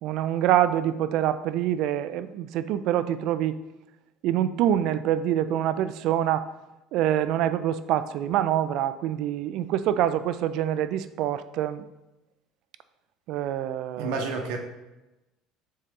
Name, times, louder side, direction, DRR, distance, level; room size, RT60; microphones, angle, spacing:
voice 1, 0.0-3.6 4.2-6.5 6.9-11.9 13.3-14.3, right 11 dB, 60° right, 13 dB, 0.4 m, -25 dB
voice 2, 14.0-14.6, right 4 dB, 75° right, 4 dB, 1.0 m, -29 dB
6.5 x 4.0 x 3.7 m, 0.99 s
cardioid pair, 140°, 0 cm